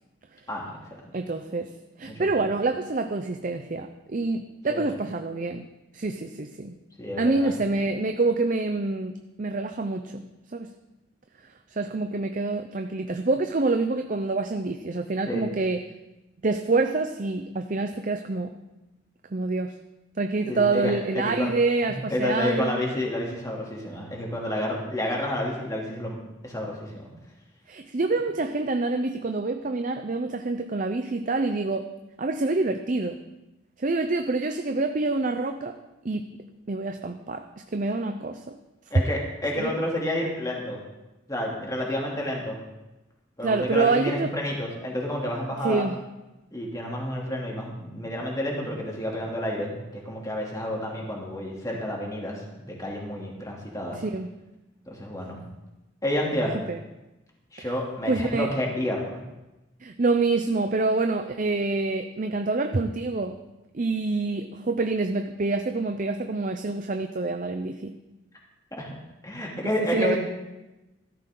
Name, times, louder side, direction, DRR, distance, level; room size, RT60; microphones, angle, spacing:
voice 1, 0.5-1.0 2.0-2.3 4.7-5.0 7.0-7.5 15.2-15.4 20.5-21.5 21.9-26.2 26.4-27.1 38.9-40.8 41.3-42.6 43.4-45.9 46.5-54.0 54.9-55.4 56.0-56.5 57.5-59.2 68.7-68.9 69.2-70.2, left 1 dB, 20° left, -2 dB, 2.9 m, -30 dB
voice 2, 1.1-5.7 5.9-6.8 7.2-10.7 11.7-15.8 16.4-18.5 19.3-19.8 20.2-22.8 27.7-31.9 32.2-33.2 33.8-35.8 36.0-36.4 36.7-37.5 37.7-38.6 39.6-39.7 43.4-44.3 45.6-46.0 53.9-54.3 56.7-56.8 57.6-57.7 58.1-58.5 59.8-63.4 63.7-68.0 69.9-70.2, right 3 dB, 40° right, 6 dB, 0.6 m, -27 dB
15.0 x 13.5 x 3.9 m, 1.0 s
head